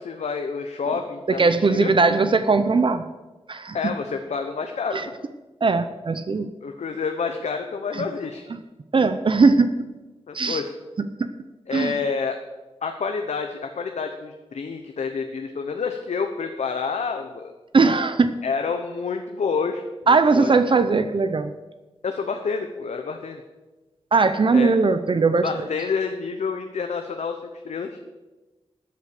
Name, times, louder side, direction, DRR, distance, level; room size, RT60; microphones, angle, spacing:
voice 1, 0.0-2.3 3.7-5.1 6.6-8.5 10.3-10.7 11.7-12.4 12.8-17.5 18.4-19.8 20.3-20.5 22.0-23.4 24.5-24.7 25.4-28.0, left 5 dB, 80° left, 5 dB, 0.9 m, -28 dB
voice 2, 1.4-3.1 3.5-3.9 4.9-5.1 5.6-6.5 7.9-8.0 8.9-9.7 10.3-10.6 11.2-11.3 11.7-12.0 17.7-18.3 20.1-21.5 24.1-25.7, right 4 dB, 50° right, 10 dB, 0.7 m, -19 dB
14.0 x 8.3 x 6.6 m, 1.2 s
wide cardioid pair, 90°, 11 cm